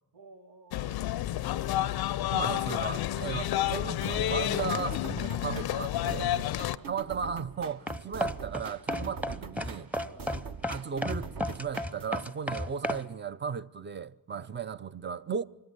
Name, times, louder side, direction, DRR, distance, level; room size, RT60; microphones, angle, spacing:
voice 1, 0.1-0.9 1.4-2.2 6.5-6.9 10.0-10.4 14.3-14.6, right 3 dB, 70° right, 1.5 m, -54 dB
sound 1, 0.7-6.8, left 13 dB, 50° left, 0.6 m, -30 dB
voice 2, 2.3-6.3 6.9-9.9 10.7-15.4, right 6 dB, 25° right, 0.6 m, -36 dB
sound 2, 4.0-12.2, right 5 dB, 45° right, 1.2 m, -44 dB
sound 3, 7.9-13.0, left 1 dB, 5° right, 0.9 m, -33 dB
24.0 x 14.5 x 7.9 m
hypercardioid pair, 40°, 48 cm